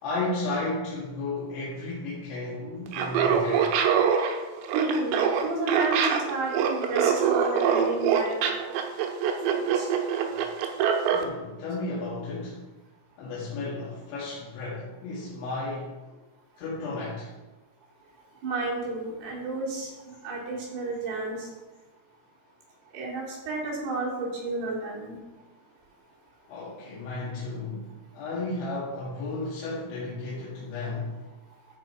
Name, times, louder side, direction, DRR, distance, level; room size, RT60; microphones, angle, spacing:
voice 1, 0.0-3.7 10.2-10.4 11.1-12.6 13.2-16.0 16.6-17.3 26.5-27.9 28.1-31.1, left 2 dB, 80° left, -7 dB, 4.2 m, -33 dB
Laughter, 2.9-11.2, right 7 dB, 80° right, 3.1 m, -24 dB
voice 2, 4.7-8.4 9.6-9.9 18.4-21.5 22.9-25.2, right 2 dB, 65° right, -4 dB, 4.4 m, -31 dB
14.0 x 4.9 x 4.7 m, 1.2 s
omnidirectional pair, 5.2 m